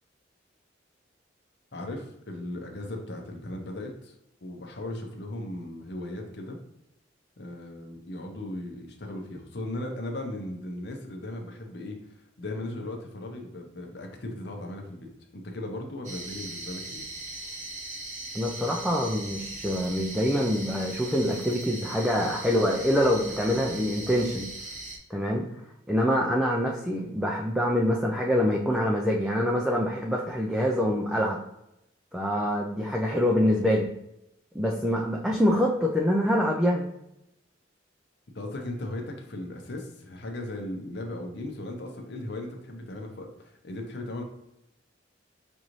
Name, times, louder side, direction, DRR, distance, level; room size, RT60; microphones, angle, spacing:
voice 1, 1.7-4.1 4.4-6.6 7.4-12.0 12.4-15.1 15.3-17.0 38.3-44.2, left 1 dB, 65° left, 2 dB, 0.8 m, -37 dB
sound 1, 16.0-25.0, right 2 dB, 40° right, 0.8 m, -39 dB
voice 2, 18.3-24.5 25.1-25.4 25.9-31.4 32.1-33.9 34.5-36.9, equal, 5° right, -2 dB, 0.4 m, -25 dB
5.3 x 2.6 x 3.0 m, 0.83 s
head